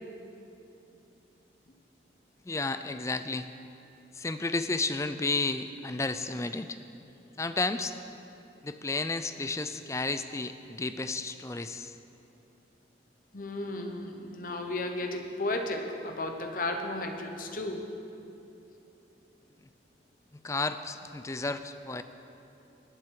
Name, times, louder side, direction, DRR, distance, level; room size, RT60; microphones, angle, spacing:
voice 1, 2.4-3.5 4.1-6.8 7.4-8.0 8.6-11.9 20.3-22.0, left 3 dB, 15° left, 11 dB, 0.4 m, -32 dB
voice 2, 13.3-17.8, left 2 dB, 50° left, 4 dB, 1.0 m, -34 dB
19.0 x 7.8 x 4.8 m, 2.9 s
head